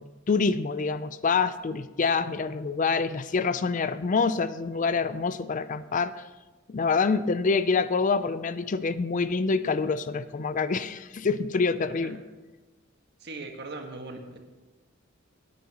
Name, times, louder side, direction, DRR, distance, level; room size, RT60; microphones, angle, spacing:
voice 1, 0.0-6.2 6.7-12.2, left 4 dB, 40° left, 13 dB, 0.4 m, -26 dB
voice 2, 13.2-14.4, right 3 dB, 55° right, 4 dB, 1.5 m, -39 dB
18.5 x 9.4 x 2.9 m, 1.2 s
head